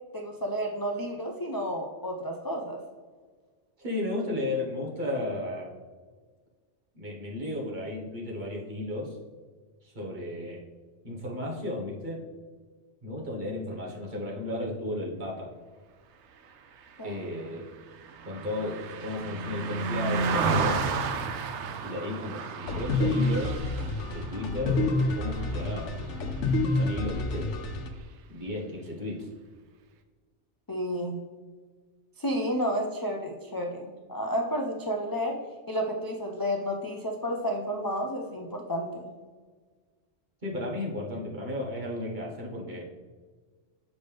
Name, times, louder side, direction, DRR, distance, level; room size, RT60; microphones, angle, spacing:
voice 1, 0.1-2.8 17.0-17.3 30.7-31.2 32.2-35.4 35.7-39.1, equal, 30° left, 0 dB, 0.4 m, -31 dB
voice 2, 3.8-5.7 6.9-9.2 9.8-10.6 11.0-12.2 13.0-15.5 17.0-17.6 18.2-20.8 21.8-23.6 24.0-25.9 26.6-27.6 28.3-29.3 40.4-42.8, left 1 dB, 40° right, -4 dB, 1.5 m, -34 dB
Car passing by, 16.8-26.4 26.8-27.0, right 4 dB, 75° right, 0.9 m, -33 dB
sound 1, 22.7-27.9, left 2 dB, 85° left, 1.0 m, -28 dB
7.1 x 5.3 x 3.4 m, 1.5 s
omnidirectional pair, 1.2 m